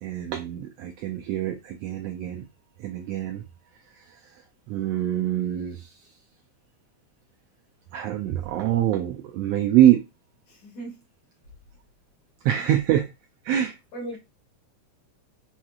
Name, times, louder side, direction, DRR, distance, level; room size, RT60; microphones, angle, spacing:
voice 1, 0.0-2.4 2.8-3.4 4.7-5.9 7.9-10.0 12.4-13.1 13.4-13.8, right 12 dB, 90° right, 1.4 m, -24 dB
voice 2, 10.5-11.0 13.9-14.2, right 2 dB, 75° left, 3.0 m, -37 dB
6.2 x 2.9 x 2.4 m
omnidirectional pair, 3.4 m